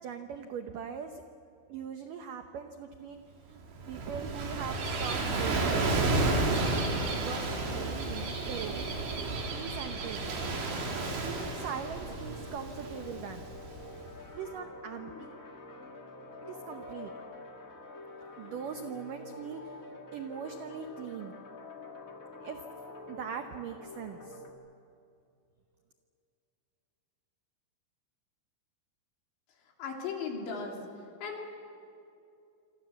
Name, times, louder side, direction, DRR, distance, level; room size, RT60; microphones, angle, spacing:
voice 1, 0.0-1.2 1.7-6.2 7.1-8.9 9.5-10.4 11.2-13.4 14.3-15.4 16.4-17.1 18.4-19.7 20.1-21.4 22.4-22.6 23.1-24.4, right 7 dB, 90° right, 6 dB, 1.8 m, -41 dB
Gull seagull / Waves surf, 3.6-14.1, right 2 dB, 65° right, 5.4 m, -32 dB
sound 1, 10.4-24.5, left 2 dB, 40° left, 1.1 m, -47 dB
voice 2, 29.8-30.8 31.2-31.5, left 5 dB, 70° left, 0 dB, 5.6 m, -36 dB
27.5 x 26.0 x 7.2 m, 2.6 s
omnidirectional pair, 5.3 m